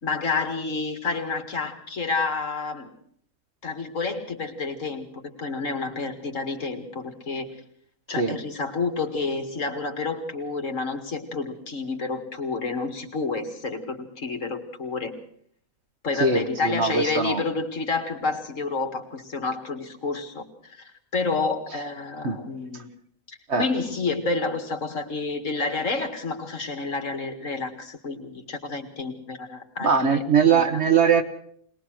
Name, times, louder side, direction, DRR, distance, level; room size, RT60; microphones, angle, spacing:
voice 1, 0.0-2.9 3.6-7.5 8.1-15.1 16.0-20.5 20.8-22.9 23.3-30.2 30.5-30.8, left 4 dB, 60° left, 6 dB, 2.4 m, -29 dB
voice 2, 16.2-17.4 22.2-22.4 23.5-23.7 29.8-31.2, right 5 dB, 50° right, 7 dB, 1.6 m, -21 dB
21.5 x 20.0 x 6.3 m, 0.63 s
omnidirectional pair, 1.5 m